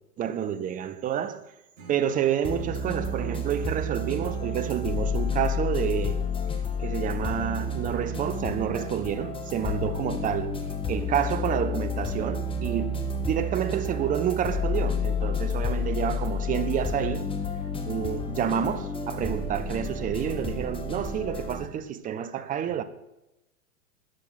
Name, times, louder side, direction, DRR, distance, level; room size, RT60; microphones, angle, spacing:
voice 1, 0.2-1.5 1.9-6.2 6.8-10.6 10.9-17.3 17.9-22.8, right 9 dB, 20° right, 0.7 m, -29 dB
Acoustic guitar / Strum, 1.7-4.9, right 5 dB, 50° right, 3.7 m, -54 dB
sound 1, 2.4-21.7, left 3 dB, 10° left, 1.5 m, -30 dB
13.0 x 11.0 x 5.9 m
hypercardioid pair, 110°, 45 cm